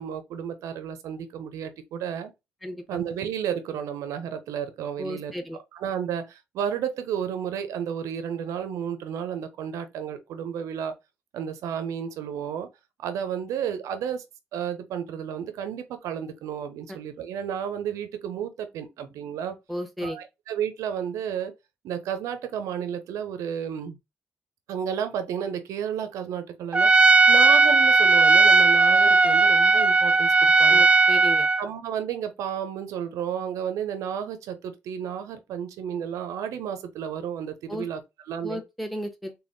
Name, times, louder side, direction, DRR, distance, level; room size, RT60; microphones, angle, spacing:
voice 1, 0.0-2.3 2.9-5.3 5.7-10.9 11.3-12.7 13.0-14.2 14.5-19.6 20.0-21.5 21.8-24.0 24.7-30.9 31.6-38.6, right 8 dB, 80° right, 0.5 m, -32 dB
voice 2, 2.6-3.0 5.0-5.6 16.9-17.0 19.7-20.2 30.7-31.5 37.7-37.9 38.4-39.3, equal, ahead, 0.9 m, -34 dB
Trumpet, 26.7-31.6, right 3 dB, 20° right, 0.4 m, -17 dB
3.4 x 2.2 x 2.5 m
supercardioid pair, 50°, 5 cm